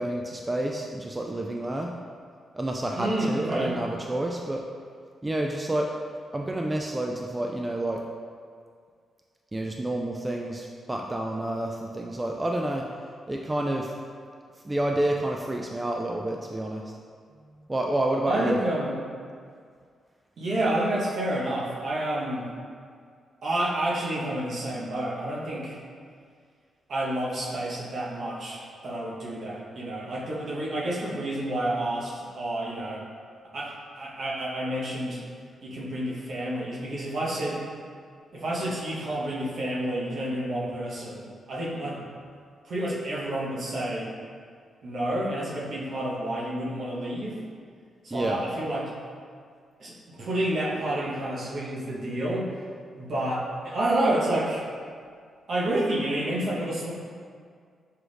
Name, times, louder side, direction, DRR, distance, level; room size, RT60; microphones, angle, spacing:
voice 1, 0.0-1.9 2.5-4.6 5.2-5.9 6.3-8.0 9.5-12.9 13.3-13.9 14.6-16.8 17.7-18.6 48.1-48.4, right 1 dB, 20° right, 0 dB, 0.3 m, -29 dB
voice 2, 2.9-3.8 18.3-19.0 20.4-22.5 23.4-25.8 26.9-33.0 33.5-35.2 35.6-37.6 38.3-42.0 42.6-44.1 44.8-47.4 48.0-48.9 49.8-52.5 53.0-54.7 55.5-56.9, right 1 dB, 65° right, -5 dB, 0.9 m, -29 dB
4.7 x 2.5 x 3.4 m, 2.1 s
supercardioid pair, 55°, 0 cm